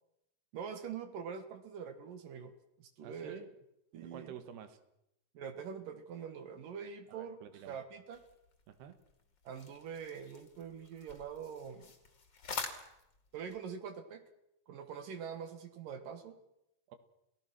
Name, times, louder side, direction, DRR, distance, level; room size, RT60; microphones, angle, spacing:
voice 1, 0.5-3.4 3.9-4.3 5.3-8.2 9.4-11.9 13.3-14.2 14.7-16.3, right 7 dB, 65° right, 9 dB, 2.9 m, -44 dB
voice 2, 3.0-3.5 4.0-4.8 7.1-7.8 8.7-9.0 16.9-17.0, right 9 dB, 80° right, 11 dB, 3.7 m, -49 dB
sound 1, 8.1-13.6, left 4 dB, 30° left, 2.6 m, -47 dB
29.5 x 18.0 x 6.1 m, 0.84 s
omnidirectional pair, 4.6 m